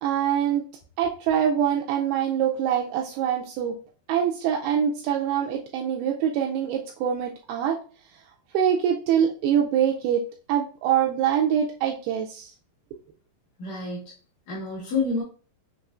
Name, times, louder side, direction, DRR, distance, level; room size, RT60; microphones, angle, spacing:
voice 1, 0.0-0.6 1.0-3.8 4.1-7.8 8.5-10.2 10.5-12.5, right 9 dB, 85° right, 0 dB, 2.3 m, -24 dB
voice 2, 13.6-14.1 14.5-15.2, left 3 dB, 65° left, -4 dB, 2.2 m, -28 dB
6.5 x 3.1 x 2.4 m, 0.38 s
omnidirectional pair, 4.8 m